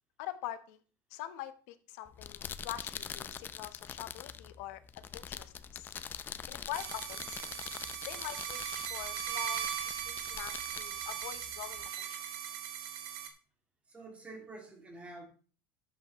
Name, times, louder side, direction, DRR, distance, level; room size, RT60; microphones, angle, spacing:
voice 1, 0.2-0.8 1.1-4.8 5.1-5.9 6.5-7.4 8.1-12.2, left 14 dB, 75° left, 1.1 m, -44 dB
sound 1, 2.0-11.9, left 7 dB, 25° left, 0.5 m, -45 dB
sound 2, 6.7-13.3, right 9 dB, 75° right, 1.8 m, -39 dB
voice 2, 13.9-15.3, right 2 dB, 15° right, 2.5 m, -48 dB
12.0 x 8.4 x 3.1 m
cardioid pair, 145°, 8 cm